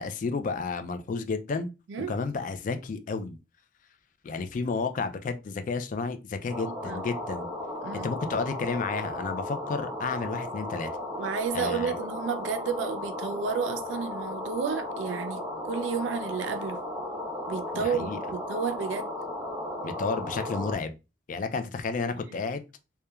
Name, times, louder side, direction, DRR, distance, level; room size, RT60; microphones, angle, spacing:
voice 1, 0.0-1.7 2.1-3.4 4.2-7.5 7.9-10.9 11.5-12.0 17.7-18.2 19.8-21.0 21.3-22.6, left 4 dB, 45° left, 0.3 m, -31 dB
sound 1, 6.5-20.8, left 1 dB, 20° right, 0.8 m, -35 dB
voice 2, 11.1-16.8 17.5-19.1 22.3-22.4, right 6 dB, 85° right, 0.4 m, -31 dB
3.0 x 2.2 x 2.2 m
head